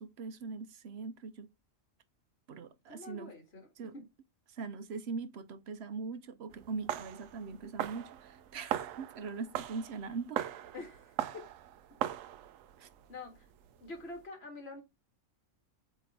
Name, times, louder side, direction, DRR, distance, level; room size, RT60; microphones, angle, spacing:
voice 1, 0.0-1.5 2.5-3.3 3.8-3.9 4.5-10.4 12.8-12.9, right 4 dB, 60° right, 0.9 m, -41 dB
voice 2, 2.9-4.1 10.7-11.1 11.3-11.4 13.1-13.5 13.8-14.8, left 3 dB, 55° left, 2.0 m, -46 dB
sound 1, 6.5-14.2, right 11 dB, 85° right, 1.0 m, -40 dB
7.8 x 3.1 x 4.1 m
omnidirectional pair, 1.3 m